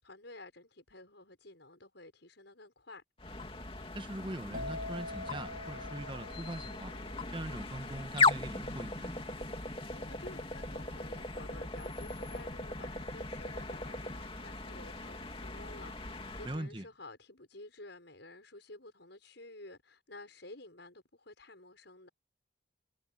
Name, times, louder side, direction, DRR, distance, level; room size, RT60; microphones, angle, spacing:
voice 1, 0.0-3.0 9.9-22.1, left 2 dB, 70° left, 6.3 m, -52 dB
sound 1, 3.2-16.6, left 3 dB, 30° left, 2.5 m, -37 dB
voice 2, 3.9-6.9 7.3-9.2 16.4-16.8, right 1 dB, 25° right, 1.4 m, -41 dB
sound 2, 4.5-12.1 12.4-12.9, left 2 dB, 45° right, 2.4 m, -46 dB
head